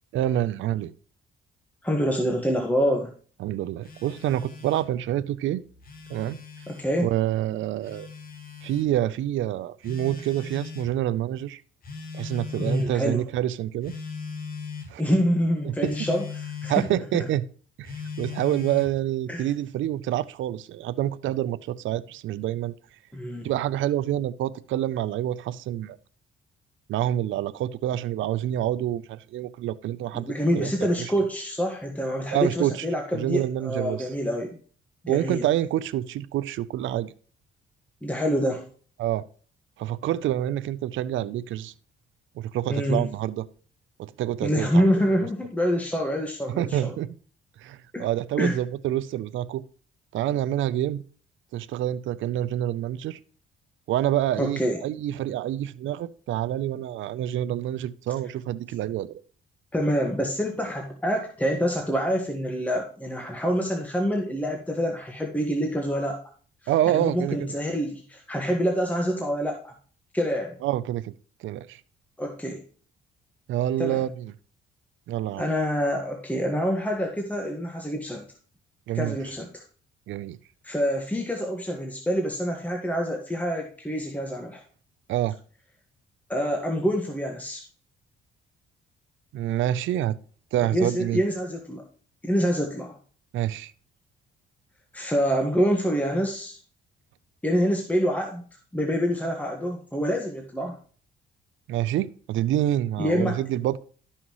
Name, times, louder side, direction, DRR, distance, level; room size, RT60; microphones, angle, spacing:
voice 1, 0.1-0.9 3.4-5.6 6.1-6.4 7.0-8.1 8.6-11.6 12.1-13.9 14.9-15.0 15.6-15.9 16.7-17.4 17.8-22.7 23.4-26.0 26.9-30.7 32.3-32.9 33.1-34.1 35.1-37.1 39.0-39.2 39.8-41.7 42.4-43.5 44.0-44.9 46.6-47.1 47.6-49.6 50.1-51.0 51.5-53.2 53.9-59.2 66.7-67.5 70.6-71.1 71.4-71.8 73.5-74.3 75.1-75.5 78.9-79.2 80.1-80.4 85.1-85.4 89.3-90.2 90.5-91.2 93.3-93.7 101.7-103.8, right 12 dB, 75° right, 0.5 m, -27 dB
voice 2, 1.8-3.1 6.7-7.1 12.6-13.2 15.0-16.7 19.3-19.5 23.1-23.5 30.1-34.6 35.0-35.4 38.0-38.6 42.7-43.0 44.4-46.9 47.9-48.1 48.4-48.6 54.4-54.8 59.7-66.2 66.9-69.7 70.1-70.6 72.2-72.6 73.8-74.0 75.4-78.2 78.9-79.6 80.6-84.6 86.3-87.6 90.7-91.8 92.2-93.0 94.9-96.6 97.4-98.4 98.7-100.8 103.0-103.4, equal, 5° left, 1.5 m, -26 dB
Telephone, 3.8-4.9 5.7-6.9 7.8-8.9 9.8-10.9 11.8-13.0 13.8-14.9 15.8-16.9 17.8-19.0, left 5 dB, 45° left, 2.1 m, -39 dB
12.5 x 5.7 x 3.0 m
cardioid pair, 90°, 20 cm